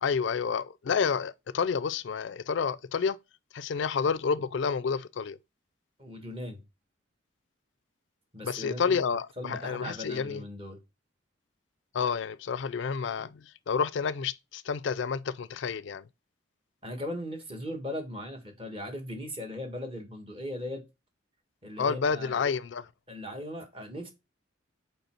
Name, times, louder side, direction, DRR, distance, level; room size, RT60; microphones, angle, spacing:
voice 1, 0.0-3.2 3.5-5.4 8.4-10.4 11.9-16.0 21.8-22.9, left 6 dB, 65° left, 0.4 m, -29 dB
voice 2, 6.0-6.6 8.3-10.8 16.8-20.8 21.6-22.4 23.1-24.1, left 1 dB, 25° right, 1.4 m, -38 dB
5.4 x 4.5 x 4.4 m
head